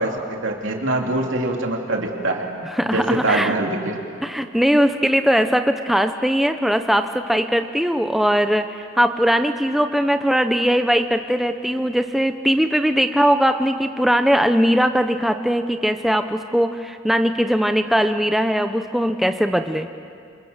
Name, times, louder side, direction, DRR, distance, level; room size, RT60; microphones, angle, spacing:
voice 1, 0.0-2.5 2.9-4.0, right 2 dB, 70° right, 1 dB, 3.3 m, -23 dB
voice 2, 2.6-3.5 4.2-19.9, equal, ahead, 7 dB, 0.7 m, -20 dB
26.5 x 26.5 x 7.3 m, 2.4 s
head